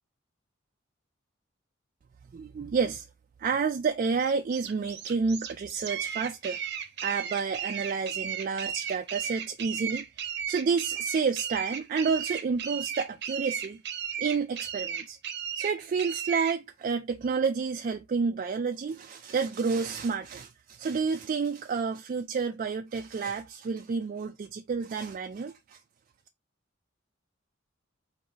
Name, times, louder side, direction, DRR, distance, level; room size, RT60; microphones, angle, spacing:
voice 1, 2.3-3.1 3.4-6.6 7.0-13.8 14.2-15.2 15.5-25.8, right 5 dB, 45° right, 0.3 m, -30 dB
sound 1, 4.2-16.6, right 8 dB, 60° right, 0.7 m, -35 dB
3.9 x 2.6 x 3.9 m
head